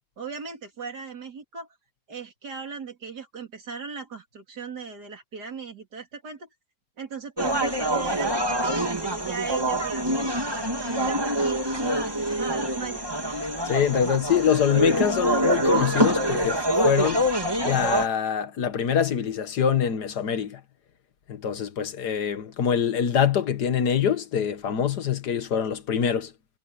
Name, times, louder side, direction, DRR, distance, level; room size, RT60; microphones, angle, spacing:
voice 1, 0.2-1.7 2.1-6.5 7.0-10.1 10.5-13.1, right 5 dB, 80° right, 3.5 m, -38 dB
sound 1, 7.4-18.1, right 1 dB, 15° right, 2.4 m, -25 dB
voice 2, 13.7-17.2 17.6-20.6 21.3-26.3, left 8 dB, 80° left, 1.9 m, -24 dB
omnidirectional pair, 1.7 m